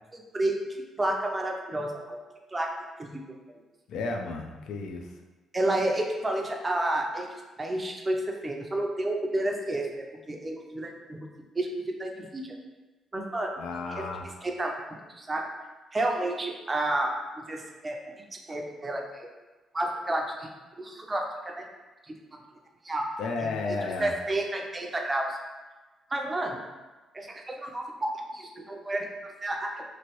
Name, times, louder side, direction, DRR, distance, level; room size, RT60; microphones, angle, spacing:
voice 1, 0.1-0.6 1.0-2.2 2.5-2.7 3.0-3.3 5.5-7.3 7.6-11.3 11.6-12.5 13.1-13.6 13.9-14.1 14.4-15.4 15.9-17.1 17.4-18.0 18.5-19.3 19.7-20.5 20.8-21.7 22.1-22.2 22.8-23.1 23.4-25.4 26.1-26.6 27.1-29.8, right 1 dB, 25° right, 1 dB, 0.4 m, -31 dB
voice 2, 3.9-5.1 13.6-14.3 23.2-24.1, left 3 dB, 80° left, 3 dB, 0.4 m, -33 dB
3.0 x 2.6 x 2.9 m, 1.2 s
cardioid pair, 90°, 0 cm